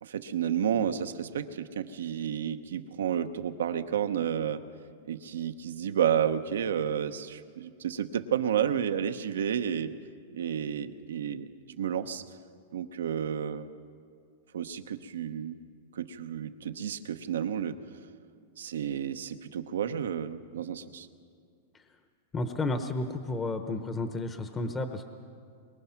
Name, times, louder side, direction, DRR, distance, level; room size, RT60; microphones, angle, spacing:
voice 1, 0.0-4.6 5.1-9.9 10.3-12.2 12.7-13.7 14.5-15.5 15.9-17.8 18.6-21.1, right 8 dB, 85° right, 9 dB, 0.9 m, -31 dB
voice 2, 22.3-25.1, left 2 dB, 20° left, 7 dB, 1.0 m, -32 dB
23.0 x 21.5 x 5.9 m, 2.3 s
hypercardioid pair, 125°, 0 cm